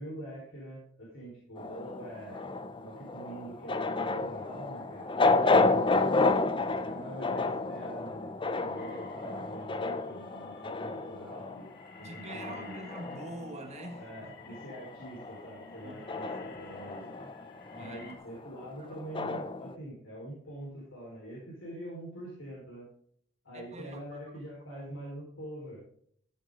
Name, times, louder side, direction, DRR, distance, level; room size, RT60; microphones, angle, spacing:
voice 1, 0.0-2.5 2.8-6.3 6.7-11.7 12.0-12.8 14.0-17.2 17.8-22.9 23.4-25.8, right 1 dB, 70° left, -4 dB, 4.5 m, -44 dB
sound 1, 1.6-14.2 14.5-19.7, left 3 dB, 25° left, 0.6 m, -31 dB
sound 2, 8.8-18.2, left 4 dB, 55° left, 1.8 m, -54 dB
voice 2, 12.0-14.6 15.8-16.1 16.5-16.6 17.7-18.2 18.8-18.9 23.5-24.2, right 2 dB, 35° right, 5 dB, 1.4 m, -45 dB
14.0 x 7.9 x 3.8 m, 0.64 s
head